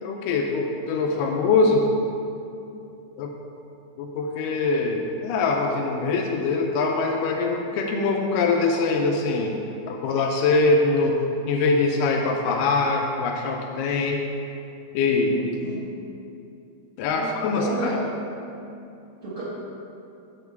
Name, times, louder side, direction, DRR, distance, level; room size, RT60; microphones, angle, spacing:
voice 1, 0.0-1.9 3.2-3.3 4.0-9.6 9.9-11.2 11.5-14.2 14.9-15.6 17.0-18.0, left 3 dB, 85° left, 1 dB, 2.2 m, -23 dB
voice 2, 17.2-18.0 19.2-19.4, right 2 dB, 30° right, -9 dB, 1.1 m, -32 dB
8.6 x 3.8 x 6.9 m, 2.7 s
omnidirectional pair, 3.8 m